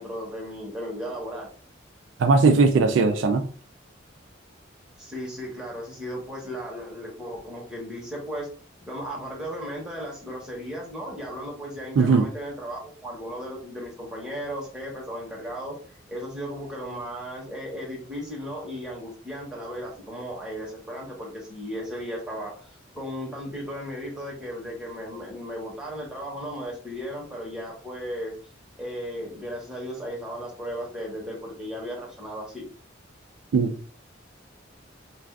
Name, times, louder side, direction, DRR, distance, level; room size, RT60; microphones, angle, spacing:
voice 1, 0.0-1.5 5.0-8.5 8.9-15.8 16.1-22.7 22.9-28.3 28.8-32.6, equal, 5° right, 0.9 m, -35 dB
voice 2, 2.2-3.5 12.0-12.3 33.5-33.7, right 4 dB, 70° right, 0.3 m, -19 dB
2.4 x 2.3 x 3.3 m
head